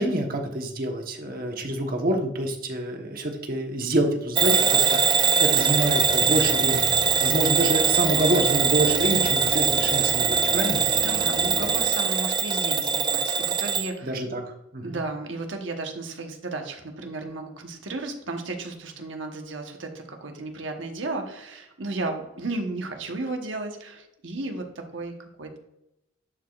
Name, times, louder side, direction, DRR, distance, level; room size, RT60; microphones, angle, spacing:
voice 1, 0.0-6.9 7.2-10.8 14.0-15.0, right 1 dB, 50° right, 3 dB, 1.2 m, -27 dB
Bell / Alarm, 4.4-13.9, right 6 dB, 25° right, 0.5 m, -22 dB
sound 1, 5.5-11.8, left 1 dB, 65° left, 2.2 m, -38 dB
voice 2, 11.0-14.2 14.8-25.6, right 2 dB, 75° right, 3 dB, 1.2 m, -34 dB
11.0 x 4.8 x 2.4 m, 0.87 s
head